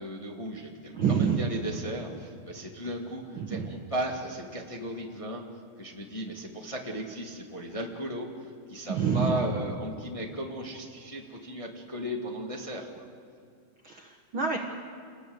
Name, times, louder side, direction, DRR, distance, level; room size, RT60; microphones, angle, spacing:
voice 1, 0.0-5.4 5.8-13.1, equal, 15° left, 0 dB, 1.0 m, -36 dB
voice 2, 0.9-1.5 3.4-3.7 8.9-9.4 13.8-14.6, right 7 dB, 90° right, 3 dB, 1.1 m, -27 dB
27.5 x 20.5 x 8.0 m, 2.3 s
omnidirectional pair, 4.4 m